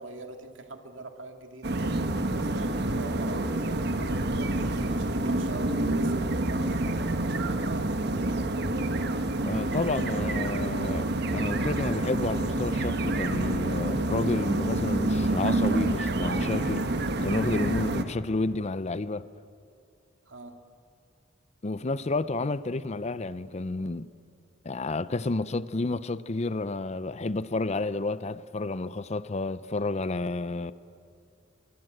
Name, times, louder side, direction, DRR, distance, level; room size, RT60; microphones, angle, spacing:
voice 1, 0.0-1.8 2.3-7.9 20.3-20.6, right 2 dB, 85° right, 2.3 m, -42 dB
sound 1, 1.6-18.0, right 2 dB, 60° right, 1.3 m, -28 dB
voice 2, 9.5-11.1 11.3-16.9 17.2-19.3 21.6-24.1 24.6-30.7, left 3 dB, 35° left, 0.6 m, -30 dB
24.0 x 23.0 x 7.8 m
head